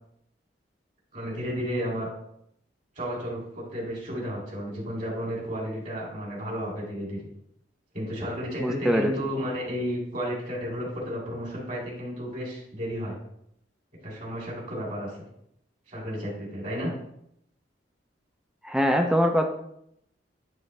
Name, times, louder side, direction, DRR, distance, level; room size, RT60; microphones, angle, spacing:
voice 1, 1.1-2.1 3.0-7.2 7.9-13.2 14.0-15.3 15.9-16.9, equal, 45° right, -3 dB, 2.4 m, -32 dB
voice 2, 8.6-9.1 18.6-19.5, equal, 5° right, 5 dB, 0.4 m, -23 dB
9.1 x 3.3 x 3.2 m, 0.74 s
head